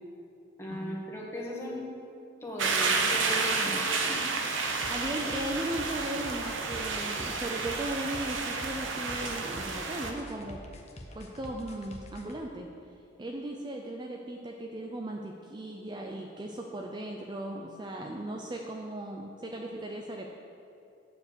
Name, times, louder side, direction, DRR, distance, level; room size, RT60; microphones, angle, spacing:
voice 1, 0.6-1.9 2.4-3.8 4.1-4.2, equal, 15° left, -4 dB, 1.5 m, -37 dB
sound 1, 2.6-10.1, right 4 dB, 90° right, 0.9 m, -31 dB
sound 2, 4.8-12.4, left 1 dB, 35° left, 0.8 m, -46 dB
voice 2, 4.9-10.6 11.1-12.7 13.2-20.3, right 1 dB, 25° right, 1 dB, 0.4 m, -37 dB
9.2 x 4.6 x 6.9 m, 2.6 s
head